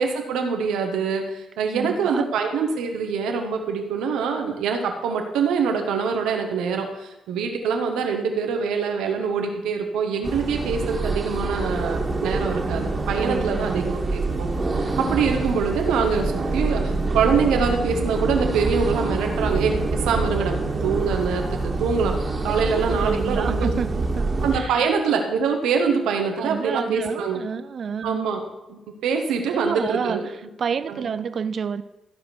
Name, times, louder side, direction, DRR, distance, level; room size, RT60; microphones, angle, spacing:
voice 1, 0.0-14.5 15.0-20.5 20.8-22.1 22.4-23.7 24.4-27.4 28.0-28.4 28.7-30.2 30.9-31.1, right 5 dB, 80° right, 4 dB, 1.4 m, -24 dB
voice 2, 1.7-2.3 13.2-13.9 22.7-24.3 24.5-24.8 26.4-28.2 29.5-31.8, right 6 dB, 55° right, 14 dB, 0.5 m, -29 dB
sound 1, 10.2-24.6, right 3 dB, 40° right, 1.9 m, -26 dB
14.0 x 5.1 x 6.1 m, 0.98 s
hypercardioid pair, 45°, 0 cm